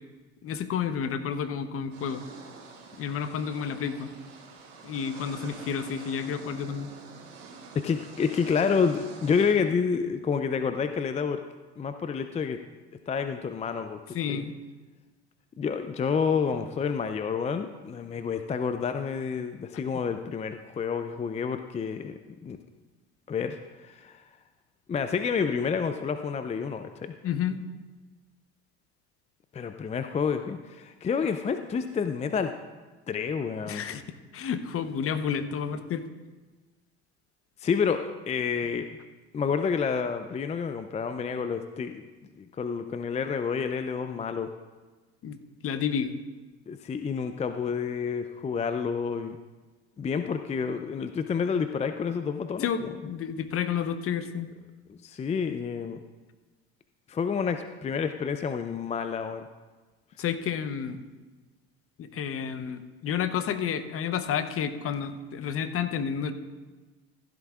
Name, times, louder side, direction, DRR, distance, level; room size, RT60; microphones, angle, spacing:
voice 1, 0.4-2.2 3.0-4.1 4.8-6.9 14.1-14.5 27.2-27.6 33.7-34.0 34.3-36.0 45.2-45.4 45.6-46.1 52.6-54.5 60.2-61.0 62.0-66.3, left 7 dB, 45° left, 10 dB, 0.9 m, -30 dB
sound 1, 1.9-9.5, right 4 dB, 70° right, 3.0 m, -47 dB
voice 2, 7.8-11.4 11.8-12.6 13.1-14.4 15.6-22.6 23.3-24.2 24.9-27.1 29.5-32.5 33.1-33.8 37.6-38.9 39.3-42.0 42.4-44.5 46.7-49.4 50.0-53.0 54.9-56.0 57.1-59.5, left 6 dB, 20° left, 8 dB, 0.5 m, -29 dB
15.5 x 12.0 x 2.4 m, 1.3 s
hypercardioid pair, 75°, 33 cm